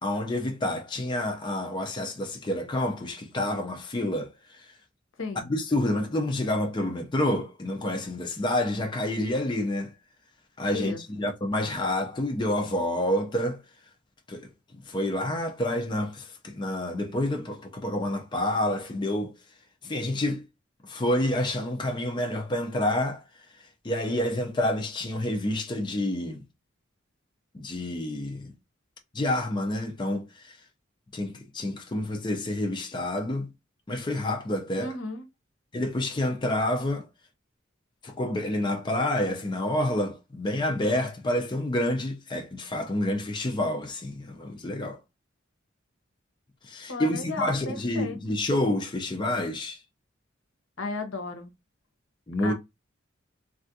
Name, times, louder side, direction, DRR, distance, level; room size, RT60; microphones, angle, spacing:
voice 1, 0.0-4.7 5.4-9.9 10.6-13.6 14.3-14.5 14.8-19.3 19.8-20.4 20.8-23.2 23.8-26.4 27.5-28.5 29.1-30.6 31.1-33.5 33.9-35.0 35.7-37.1 38.0-45.0 46.6-49.8 52.3-52.5, left 1 dB, 25° left, 0.5 m, -28 dB
voice 2, 5.2-5.5 10.7-11.0 34.8-35.2 46.9-48.2 50.8-51.5 52.4-52.5, left 3 dB, 75° left, 0.8 m, -34 dB
3.3 x 2.4 x 2.6 m
head